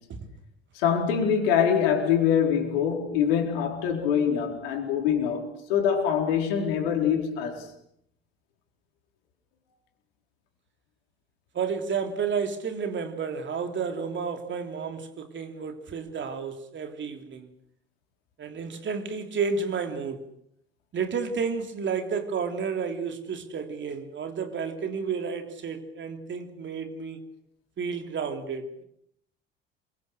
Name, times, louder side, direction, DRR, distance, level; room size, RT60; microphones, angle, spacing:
voice 1, 0.7-7.7, left 8 dB, 65° left, 4.4 m, -24 dB
voice 2, 11.5-17.5 18.4-20.2 20.9-27.2 27.8-28.8, right 5 dB, 35° right, 3.3 m, -31 dB
27.5 x 23.5 x 6.5 m
figure-of-eight pair, 60°, 31 cm